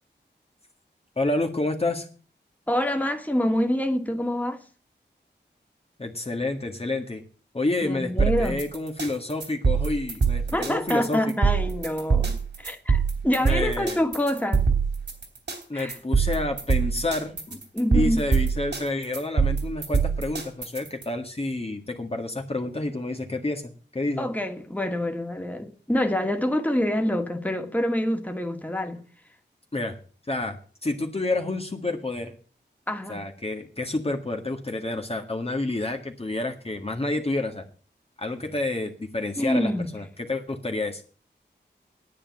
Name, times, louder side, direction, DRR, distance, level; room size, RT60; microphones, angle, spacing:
voice 1, 1.1-2.1 6.0-7.2 7.5-11.2 13.4-14.0 15.7-17.6 17.9-24.3 29.7-30.0 30.3-32.3 33.1-37.6 38.2-41.0, left 2 dB, 30° left, 1.7 m, -29 dB
voice 2, 2.7-4.6 7.8-8.6 10.5-14.6 15.7-16.0 17.7-18.2 24.2-29.0 32.9-33.2 39.4-39.9, left 1 dB, 10° left, 2.0 m, -26 dB
sound 1, 8.2-21.0, right 5 dB, 70° right, 3.4 m, -24 dB
10.5 x 8.8 x 7.2 m
wide cardioid pair, 55°, 19 cm